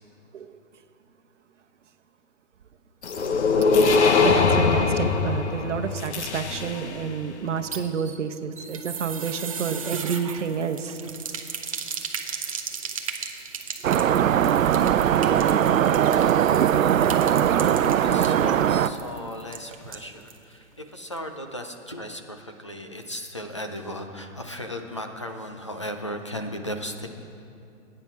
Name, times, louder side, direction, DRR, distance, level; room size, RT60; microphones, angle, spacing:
sound 1, 3.0-7.1, left 4 dB, 60° left, 1.0 m, -21 dB
voice 1, 4.2-11.0, right 7 dB, 65° right, 7 dB, 1.0 m, -30 dB
sound 2, 7.5-20.4 20.7-20.8 21.1-21.2, right 6 dB, 30° right, 0.6 m, -37 dB
sound 3, 13.8-18.9, right 9 dB, 90° right, 0.6 m, -20 dB
voice 2, 17.6-27.1, equal, 25° left, 5 dB, 0.4 m, -36 dB
18.5 x 9.0 x 4.7 m, 2.6 s
hypercardioid pair, 175°, 39 cm